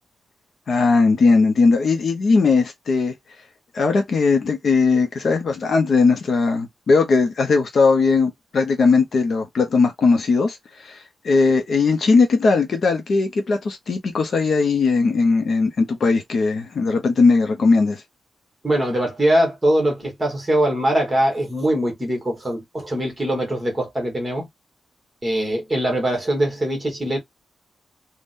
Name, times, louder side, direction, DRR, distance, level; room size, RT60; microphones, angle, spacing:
voice 1, 0.7-3.1 3.7-11.0 11.2-18.0, left 4 dB, 50° left, 0.6 m, -18 dB
voice 2, 18.6-24.5 25.2-27.2, right 1 dB, 15° right, 1.3 m, -22 dB
3.5 x 2.1 x 2.5 m
wide cardioid pair, 175°, 0 cm